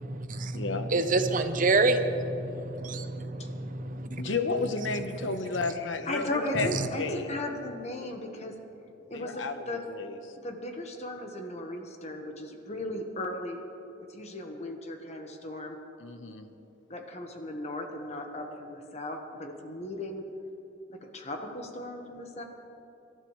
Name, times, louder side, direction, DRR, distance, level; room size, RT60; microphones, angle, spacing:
voice 1, 0.0-0.6 0.9-4.2, right 3 dB, 45° right, 8 dB, 0.8 m, -28 dB
voice 2, 0.5-0.9 4.2-6.7 7.0-7.3 9.1-10.2 16.0-16.5, left 3 dB, 85° left, 8 dB, 1.0 m, -32 dB
voice 3, 6.1-8.5 9.1-9.8 10.4-13.6 14.1-15.8 16.9-20.2 20.9-22.4, left 1 dB, 35° left, 3 dB, 1.3 m, -36 dB
25.0 x 12.5 x 3.2 m, 2.9 s
head